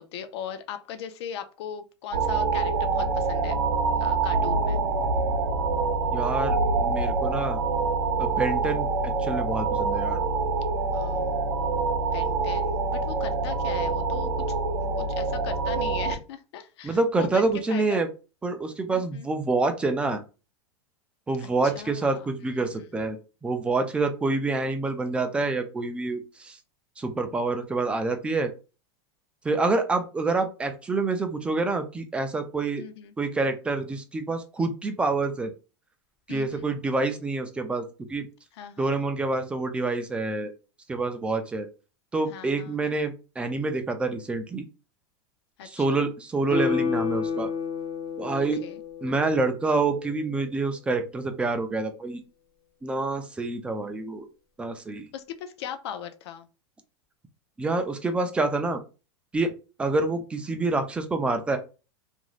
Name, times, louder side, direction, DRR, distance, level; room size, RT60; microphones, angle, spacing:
voice 1, 0.0-3.6 4.0-4.8 10.9-14.4 14.8-18.0 18.9-19.3 21.4-22.8 32.8-33.1 36.3-36.7 38.6-38.9 42.3-42.8 45.6-46.0 48.6-48.8 55.1-56.5, left 9 dB, 65° left, 8 dB, 0.5 m, -39 dB
sound 1, 2.1-16.1, right 4 dB, 75° right, 0.7 m, -26 dB
voice 2, 6.1-7.6 8.2-10.2 16.8-18.1 18.4-20.2 21.3-26.6 27.0-28.5 29.4-32.8 33.2-35.5 36.3-38.3 38.8-40.5 40.9-41.7 42.1-44.6 45.6-47.5 48.2-48.6 49.0-52.2 52.8-54.3 54.6-55.1 57.6-58.8 59.3-59.5 59.8-61.6, right 3 dB, 10° right, 6 dB, 0.4 m, -27 dB
Guitar, 46.5-49.8 50.1-50.2, left 6 dB, 35° left, 0.8 m, -30 dB
3.0 x 2.5 x 2.4 m, 0.32 s
supercardioid pair, 145°, 15 cm